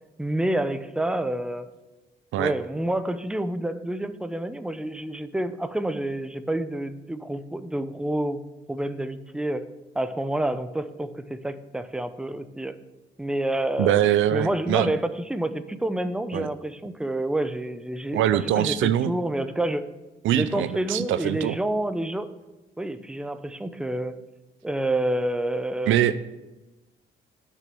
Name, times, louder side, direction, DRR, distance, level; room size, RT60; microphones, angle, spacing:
voice 1, 0.2-1.7 2.4-9.6 9.9-12.8 13.2-13.9 14.3-19.8 20.3-22.3 22.8-24.2 24.6-26.1, right 1 dB, 5° right, 11 dB, 0.6 m, -28 dB
voice 2, 13.8-14.9 16.3-16.5 18.1-19.1 20.2-21.6 25.9-26.2, right 11 dB, 80° right, 14 dB, 0.5 m, -23 dB
9.1 x 6.9 x 6.8 m, 1.1 s
cardioid pair, 90°, 20 cm